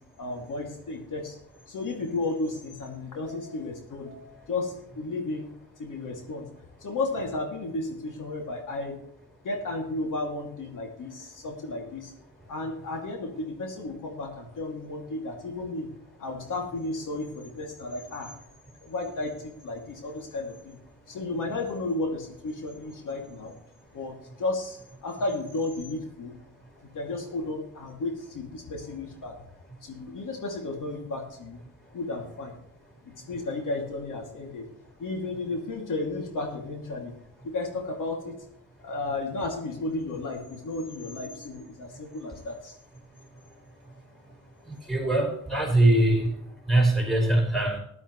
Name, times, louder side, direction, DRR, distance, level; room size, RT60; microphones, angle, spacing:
voice 1, 0.2-1.4 1.7-5.5 5.8-6.5 6.8-9.0 9.4-12.1 12.5-15.9 16.2-18.3 18.8-20.8 21.1-23.6 23.9-26.3 26.9-29.4 29.8-31.6 31.9-32.6 33.0-34.7 35.0-37.1 37.4-38.4 38.8-42.8, left 2 dB, 75° left, 2 dB, 2.6 m, -33 dB
voice 2, 44.9-46.3 46.7-47.8, right 1 dB, ahead, 0 dB, 5.2 m, -22 dB
14.5 x 11.5 x 3.2 m, 0.74 s
cardioid pair, 95°, 31 cm